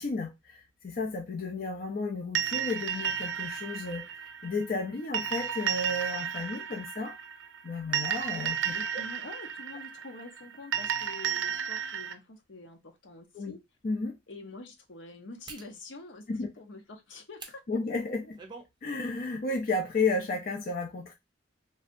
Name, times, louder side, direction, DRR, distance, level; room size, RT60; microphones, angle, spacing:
voice 1, 0.0-7.2 7.6-8.7 13.3-13.5 13.8-14.1 16.3-16.5 17.7-18.4 18.8-21.1, left 3 dB, 50° left, 0.5 m, -33 dB
sound 1, 2.3-12.1, right 9 dB, 80° right, 0.5 m, -33 dB
voice 2, 8.7-13.6 14.3-17.6, left 2 dB, 75° left, 0.8 m, -46 dB
sound 2, 12.6-12.7 13.4-13.5 15.5-15.7 17.3-17.6 18.1-18.7 19.1-19.3, right 4 dB, 25° right, 0.5 m, -46 dB
3.2 x 2.7 x 2.5 m
head